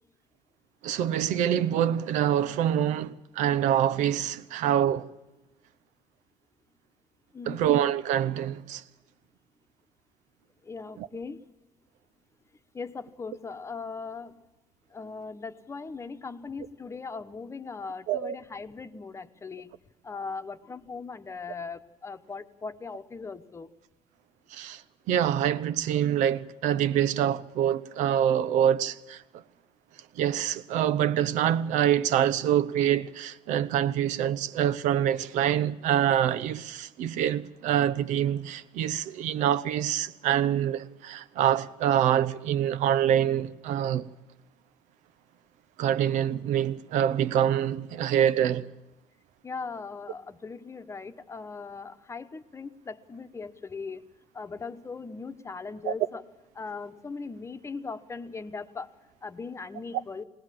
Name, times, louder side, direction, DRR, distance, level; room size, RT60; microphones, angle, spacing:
voice 1, 0.8-5.1 7.5-8.8 11.0-11.1 18.1-18.4 24.5-24.8 25.1-29.2 30.2-44.1 45.8-48.7 55.8-55.9, right 10 dB, 90° right, 0.9 m, -25 dB
voice 2, 7.3-7.7 10.6-11.4 12.7-14.5 14.9-19.7 20.0-23.7 49.4-54.1 54.3-56.2 56.5-58.9 59.2-60.2, left 4 dB, 25° left, 1.0 m, -39 dB
20.5 x 20.0 x 7.5 m
cardioid pair, 130°, 12 cm